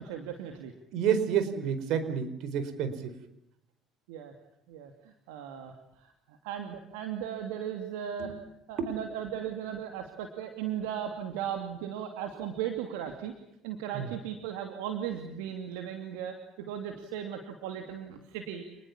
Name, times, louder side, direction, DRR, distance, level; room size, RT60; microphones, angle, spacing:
voice 1, 0.0-0.7 4.1-4.3 4.7-8.3 8.7-13.3 13.6-18.7, right 9 dB, 85° right, 5 dB, 2.8 m, -37 dB
voice 2, 0.9-3.1 8.2-8.4 8.8-8.9 13.9-14.1, right 7 dB, 70° right, 12 dB, 4.5 m, -29 dB
28.5 x 21.0 x 7.3 m, 0.81 s
supercardioid pair, 80°, 0 cm